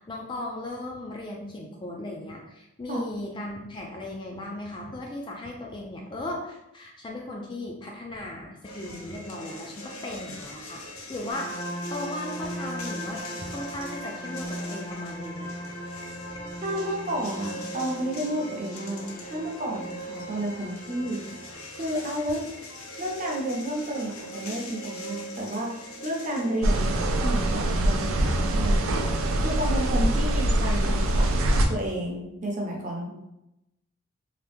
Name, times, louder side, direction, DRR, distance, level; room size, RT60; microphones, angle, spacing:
voice 1, 0.0-10.8 11.1-11.6 11.9-15.7 30.0-30.1 30.5-30.8, left 1 dB, 20° left, 0 dB, 0.3 m, -37 dB
sound 1, 8.6-28.2, equal, 80° left, 0.6 m, -42 dB
sound 2, 11.3-21.5, equal, 60° left, 0.9 m, -38 dB
voice 2, 16.6-21.4 21.7-22.5 23.0-28.8 29.1-31.3 31.7-33.1, right 1 dB, 35° right, -2 dB, 0.6 m, -31 dB
sound 3, 26.6-31.6, right 1 dB, 75° right, 0.4 m, -23 dB
2.9 x 2.2 x 3.4 m, 0.88 s
head